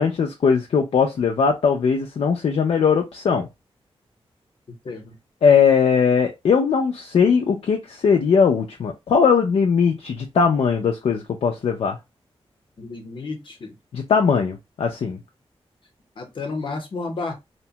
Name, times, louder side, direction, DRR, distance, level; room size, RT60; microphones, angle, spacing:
voice 1, 0.0-3.5 5.4-12.0 13.9-15.2, left 6 dB, 70° left, 0.4 m, -19 dB
voice 2, 4.8-5.2 12.8-13.8 16.2-17.3, left 3 dB, 55° left, 0.8 m, -31 dB
2.8 x 2.2 x 2.7 m
wide cardioid pair, 140°, 10 cm